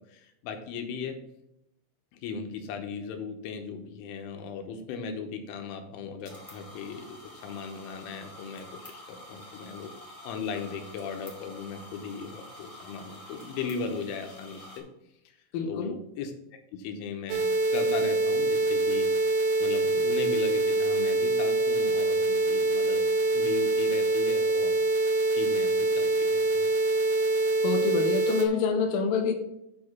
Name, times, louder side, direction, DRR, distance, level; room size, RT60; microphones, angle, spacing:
voice 1, 0.1-1.2 2.1-7.2 7.4-9.9 10.2-14.9 15.7-16.3 16.7-19.1 19.6-23.0 23.3-24.7 25.3-26.7, left 5 dB, 90° left, 5 dB, 3.5 m, -37 dB
sound 1, 6.2-14.8, left 1 dB, 20° left, 0.9 m, -48 dB
voice 2, 15.5-15.9 27.6-29.3, left 5 dB, 65° left, 2 dB, 2.7 m, -27 dB
sound 2, 17.3-28.5, right 2 dB, 80° right, 3.7 m, -25 dB
8.7 x 5.1 x 5.5 m, 0.81 s
omnidirectional pair, 5.5 m